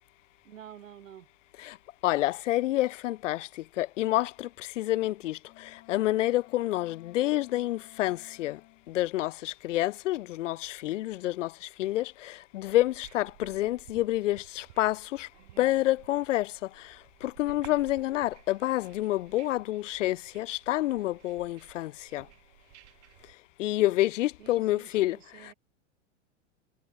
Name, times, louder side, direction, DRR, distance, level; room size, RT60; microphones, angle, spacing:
voice 1, 0.4-1.3 24.4-25.5, right 10 dB, 85° right, 4.5 m, -49 dB
voice 2, 2.0-3.5 3.8-4.5 4.8-5.4 5.9-8.6 8.9-11.5 11.8-15.3 15.6-16.5 17.2-22.2 23.6-25.2, left 15 dB, 80° left, 0.6 m, -28 dB
Wind instrument woodwind instrument, 5.4-8.9, left 21 dB, 45° left, 4.7 m, -55 dB
sound 1, 12.7-23.3, right 17 dB, 65° right, 4.0 m, -54 dB
hypercardioid pair, 110°, 37 cm